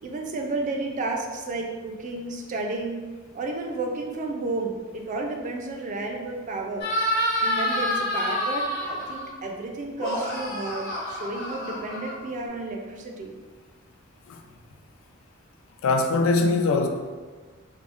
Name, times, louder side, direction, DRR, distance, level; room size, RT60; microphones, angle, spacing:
voice 1, 0.0-3.0 3.3-6.9 7.4-13.3, right 2 dB, 35° right, 0.3 m, -32 dB
sound 1, 6.8-9.3 9.9-12.5, equal, 55° left, 1.0 m, -28 dB
voice 2, 15.8-16.9, left 3 dB, 75° left, 0.3 m, -22 dB
3.4 x 2.0 x 2.4 m
head